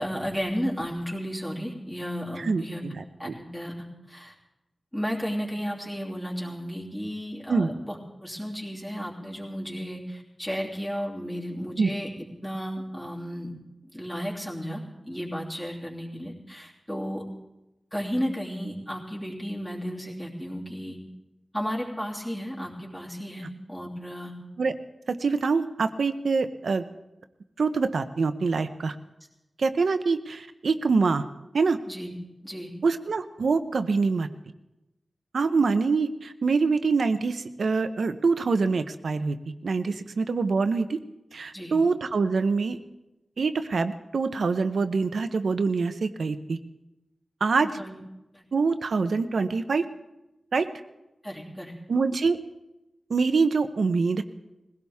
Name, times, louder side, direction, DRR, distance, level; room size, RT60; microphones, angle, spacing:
voice 1, 0.0-2.8 3.2-4.3 4.9-12.1 12.4-13.5 13.9-17.2 17.9-21.0 21.5-24.3 31.9-32.1 32.4-32.7 39.9-40.0 41.5-41.7 47.6-48.0 48.3-48.4 51.2-51.7, equal, 10° left, -3 dB, 3.0 m, -33 dB
voice 2, 2.4-3.0 7.5-7.7 11.8-11.9 24.6-24.7 25.1-26.8 27.6-29.0 29.6-31.2 31.5-31.8 32.8-34.3 35.3-39.4 39.6-41.0 41.3-42.8 43.4-46.6 47.4-47.7 48.5-49.8 50.5-50.7 51.9-52.4 53.1-54.2, right 4 dB, 80° right, 9 dB, 0.9 m, -25 dB
21.0 x 16.5 x 3.6 m, 0.95 s
wide cardioid pair, 115°, 0 cm